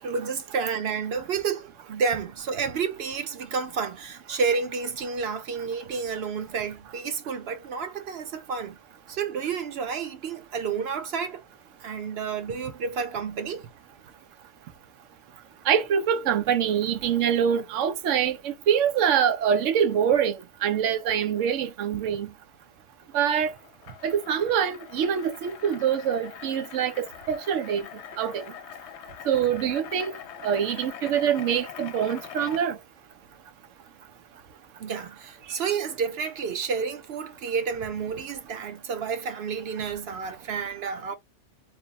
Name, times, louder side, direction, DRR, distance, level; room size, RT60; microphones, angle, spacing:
voice 1, 0.0-8.8 9.1-11.4 11.8-13.7 34.8-41.1, right 5 dB, 65° right, 0.9 m, -30 dB
voice 2, 15.7-20.4 20.6-22.3 23.1-23.5 24.0-27.9 28.2-28.5 29.3-32.8, right 8 dB, 90° right, 1.0 m, -25 dB
sound 1, 23.1-32.6, left 10 dB, 70° left, 0.8 m, -43 dB
3.2 x 2.1 x 4.0 m
omnidirectional pair, 1.2 m